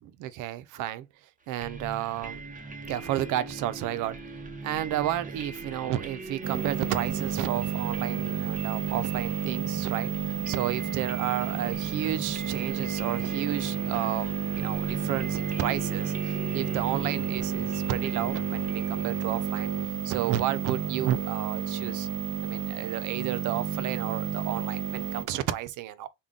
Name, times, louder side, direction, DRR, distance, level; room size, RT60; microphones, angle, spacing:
voice 1, 0.0-1.1 1.5-2.4 2.9-10.1 10.5-19.7 20.0-22.1 22.4-26.1, right 12 dB, 90° right, 0.5 m, -32 dB
sound 1, 1.6-20.3, right 3 dB, 25° right, 0.7 m, -42 dB
sound 2, 6.4-25.2, right 8 dB, 60° right, 0.8 m, -31 dB
3.6 x 2.2 x 3.6 m
cardioid pair, 90°, 30 cm